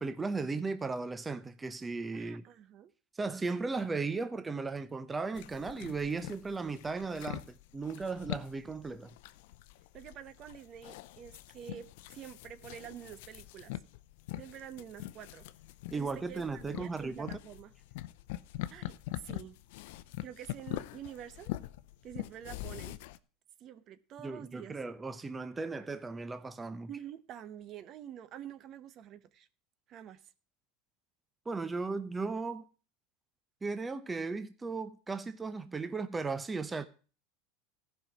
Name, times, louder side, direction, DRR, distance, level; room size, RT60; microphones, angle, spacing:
voice 1, 0.0-2.4 3.1-7.5 7.7-9.1 15.9-17.4 24.2-26.9 31.5-32.7 33.6-36.9, right 4 dB, 15° right, 0.7 m, -36 dB
voice 2, 2.1-2.9 9.9-13.8 14.4-15.4 15.9-17.7 18.7-19.6 20.2-21.5 22.0-23.0 23.6-24.8 26.9-29.5 29.9-30.2, right 10 dB, 45° right, 0.9 m, -47 dB
sound 1, 5.4-23.2, left 15 dB, 70° left, 0.6 m, -44 dB
14.5 x 5.6 x 6.0 m
hypercardioid pair, 100°, 0 cm